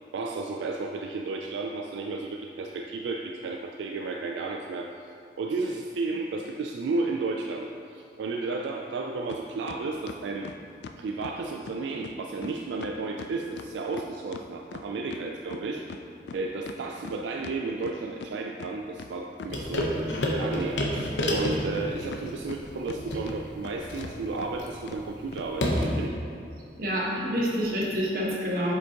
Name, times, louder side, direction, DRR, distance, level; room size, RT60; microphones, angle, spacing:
voice 1, 0.1-10.5 11.0-15.9 16.3-26.1, right 3 dB, 80° right, 2 dB, 0.3 m, -33 dB
sound 1, 9.3-9.4 9.7-11.4 11.7-11.8 12.0-12.2 12.4-12.5 12.8-15.2 15.5-18.3 18.6-18.7 19.0-19.9 20.2-21.1 21.4-23.0 23.3-23.7 24.0-24.1 24.4-24.5 24.9-25.0 25.3-25.5, left 5 dB, 70° left, 0.3 m, -41 dB
sound 2, 19.5-26.1, left 1 dB, 85° left, 0.9 m, -30 dB
voice 2, 26.8-28.7, equal, 50° right, -5 dB, 1.3 m, -27 dB
7.9 x 5.0 x 2.9 m, 2.5 s
head